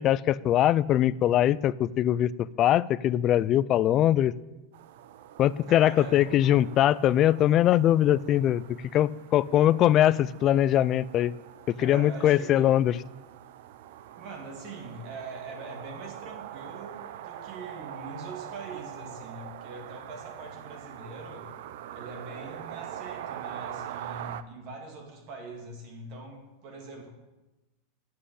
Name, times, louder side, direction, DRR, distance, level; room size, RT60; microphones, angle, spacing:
voice 1, 0.0-4.3 5.4-8.6 8.9-11.3 11.8-13.0, left 12 dB, 35° left, 19 dB, 0.4 m, -22 dB
sound 1, 4.7-24.4, right 11 dB, 70° right, 0.6 m, -43 dB
voice 2, 5.7-6.4 11.8-12.7 14.2-21.5 21.9-27.1, right 3 dB, 50° right, 2 dB, 2.8 m, -42 dB
10.0 x 7.6 x 8.5 m, 1.1 s
supercardioid pair, 130°, 0 cm